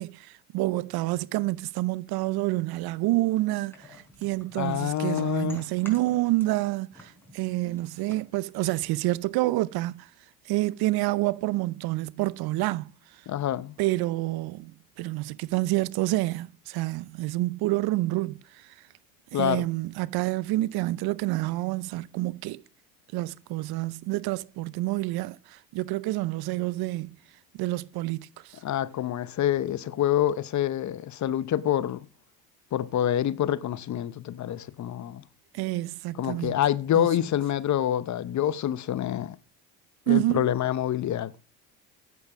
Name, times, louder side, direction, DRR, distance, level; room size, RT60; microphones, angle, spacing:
voice 1, 0.0-10.1 10.5-12.9 13.8-14.7 15.0-18.4 19.3-22.6 23.1-27.2 27.5-28.6 35.5-36.6 37.0-37.1 40.1-40.5, right 18 dB, 60° right, 0.6 m, -28 dB
sound 1, 3.7-6.7 6.9-9.3, left 1 dB, 5° left, 5.0 m, -50 dB
voice 2, 4.5-5.6 13.3-13.8 19.3-19.7 28.6-32.1 32.7-35.2 36.2-39.4 40.1-41.3, left 11 dB, 40° left, 0.8 m, -27 dB
8.9 x 8.2 x 6.0 m
hypercardioid pair, 70°, 43 cm